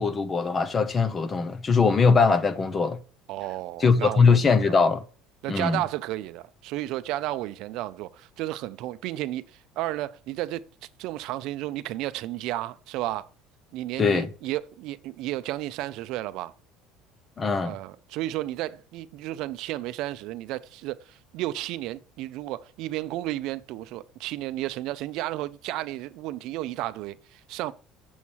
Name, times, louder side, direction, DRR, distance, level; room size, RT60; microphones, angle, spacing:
voice 1, 0.0-3.0 3.8-5.0 5.5-5.8 14.0-14.3 17.4-17.8, left 5 dB, 20° left, 0.8 m, -21 dB
voice 2, 3.3-4.8 5.4-10.6 11.0-13.3 13.7-16.5 17.6-27.7, right 15 dB, 55° right, 0.5 m, -33 dB
7.2 x 7.1 x 4.7 m
cardioid pair, 170°, 0 cm